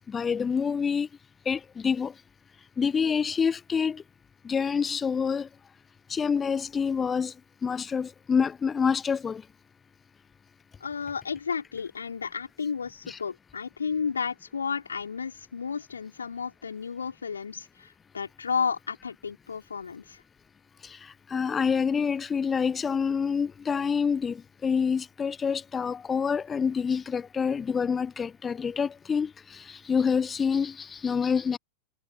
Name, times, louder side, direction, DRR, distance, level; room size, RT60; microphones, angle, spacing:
voice 1, 0.1-1.1 1.5-2.1 2.8-4.0 4.4-5.5 6.1-7.3 7.6-9.4 13.1-13.2 21.3-31.6, left 6 dB, 20° left, 0.6 m, -27 dB
voice 2, 10.8-17.9 18.1-20.2, left 6 dB, 70° left, 4.4 m, -32 dB
figure-of-eight pair, 90°, 0 cm